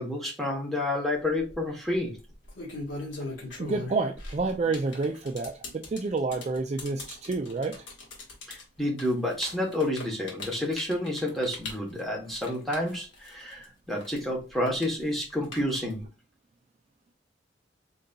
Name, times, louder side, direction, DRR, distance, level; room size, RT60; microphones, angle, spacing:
voice 1, 0.0-2.2 8.5-16.0, left 1 dB, ahead, 1.0 m, -30 dB
sound 1, 1.2-1.5 2.3-13.7 14.0-16.1, left 2 dB, 85° left, 1.5 m, -40 dB
voice 2, 3.6-7.7, right 3 dB, 35° right, 0.3 m, -29 dB
3.9 x 3.8 x 2.3 m
head